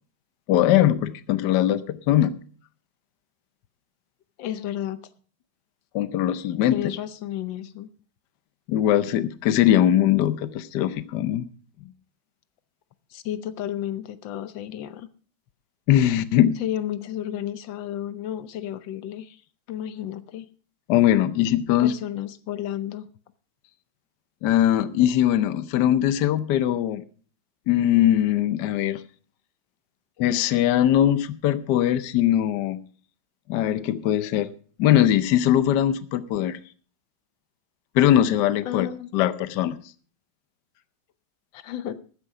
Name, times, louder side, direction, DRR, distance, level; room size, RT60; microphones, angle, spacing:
voice 1, 0.5-2.4 5.9-6.8 8.7-11.5 15.9-16.6 20.9-21.9 24.4-27.0 27.7-29.0 30.2-32.8 33.5-34.5 34.8-36.6 37.9-38.9 39.1-39.8, left 11 dB, 70° left, 14 dB, 1.3 m, -21 dB
voice 2, 4.4-5.0 6.6-7.9 13.1-15.1 16.6-19.4 19.7-20.5 21.8-23.1 38.7-39.1 41.5-42.0, left 11 dB, 85° left, 14 dB, 1.5 m, -32 dB
13.5 x 9.8 x 4.8 m, 0.42 s
omnidirectional pair, 2.0 m